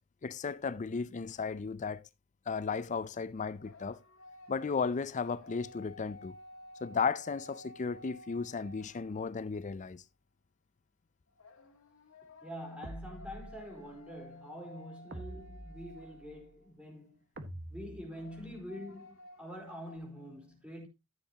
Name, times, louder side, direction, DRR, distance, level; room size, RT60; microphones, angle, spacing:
voice 1, 0.2-2.1 2.5-4.0 4.5-6.4 6.8-10.0, left 5 dB, 35° left, 0.5 m, -35 dB
sound 1, 3.5-9.5 11.4-16.7 18.1-20.0, left 1 dB, 65° left, 2.1 m, -54 dB
voice 2, 12.4-17.2 17.7-20.9, equal, 5° right, 4.3 m, -46 dB
sound 2, 12.8-13.9 15.1-16.4 17.4-18.6, right 1 dB, 50° right, 1.5 m, -47 dB
14.0 x 7.9 x 2.9 m
head